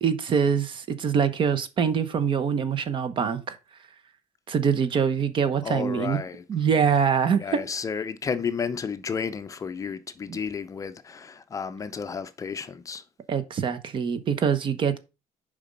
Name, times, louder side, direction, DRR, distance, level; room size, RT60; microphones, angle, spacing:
voice 1, 0.0-3.6 4.5-6.2 6.5-7.6 10.3-10.4 13.3-15.0, right 7 dB, 40° right, 1.0 m, -24 dB
voice 2, 5.6-6.4 7.4-13.0, left 6 dB, 25° left, 0.6 m, -32 dB
7.1 x 5.1 x 5.3 m
cardioid pair, 150°, 12 cm